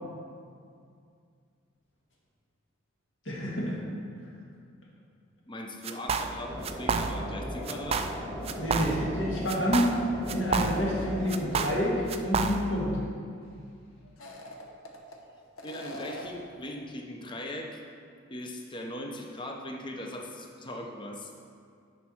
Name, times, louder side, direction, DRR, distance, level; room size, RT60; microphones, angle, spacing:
voice 1, 3.3-3.8 8.6-9.9 10.3-13.0, equal, 60° left, -5 dB, 1.9 m, -28 dB
voice 2, 5.5-8.0 15.6-17.8 18.3-21.3, left 1 dB, 25° left, 2 dB, 0.7 m, -39 dB
sound 1, 5.8-6.4 6.6-7.4 7.7-8.2 8.5-9.2 9.5-11.0 11.3-12.8, right 5 dB, 30° right, 0.3 m, -30 dB
sound 2, 6.4-11.6, equal, ahead, 1.0 m, -39 dB
sound 3, 10.7-11.7 12.1-12.2 14.0-15.2 15.6-16.5, left 1 dB, 80° left, 0.9 m, -44 dB
10.5 x 4.7 x 4.3 m, 2.3 s
head